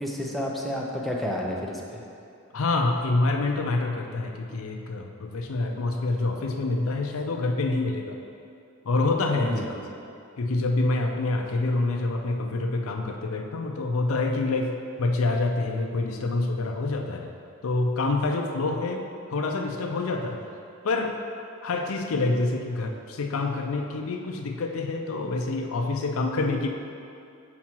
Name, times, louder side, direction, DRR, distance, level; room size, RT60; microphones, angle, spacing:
voice 1, 0.0-2.0 9.4-9.6, left 1 dB, ahead, -2 dB, 0.7 m, -30 dB
voice 2, 2.5-8.2 8.9-9.6 10.4-17.3 17.6-19.1 19.3-20.4 20.8-21.2 21.6-26.7, left 2 dB, 90° left, 3 dB, 0.5 m, -26 dB
7.2 x 4.9 x 4.5 m, 2.5 s
head